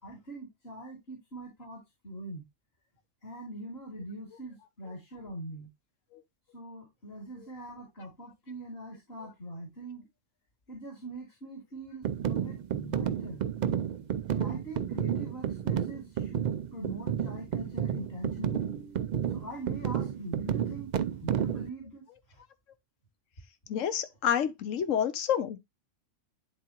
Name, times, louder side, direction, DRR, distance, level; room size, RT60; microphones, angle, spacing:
voice 1, 0.0-2.5 3.2-5.7 6.5-10.1 10.7-13.4 14.3-20.9 21.2-22.4, right 2 dB, 55° left, 2.3 m, -43 dB
sound 1, 12.0-21.7, right 9 dB, 85° right, 0.4 m, -31 dB
voice 2, 23.7-25.6, left 9 dB, 80° left, 1.1 m, -29 dB
10.5 x 3.7 x 2.9 m
omnidirectional pair, 1.3 m